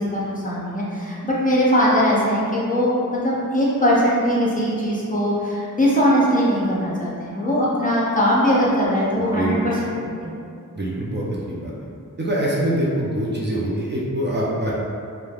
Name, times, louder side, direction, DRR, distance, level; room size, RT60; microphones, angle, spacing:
voice 1, 0.1-10.3, equal, 25° left, -7 dB, 0.6 m, -20 dB
voice 2, 10.7-11.7 12.2-14.7, right 1 dB, 35° right, -6 dB, 0.4 m, -24 dB
3.1 x 2.1 x 2.3 m, 2.5 s
wide cardioid pair, 60°, 33 cm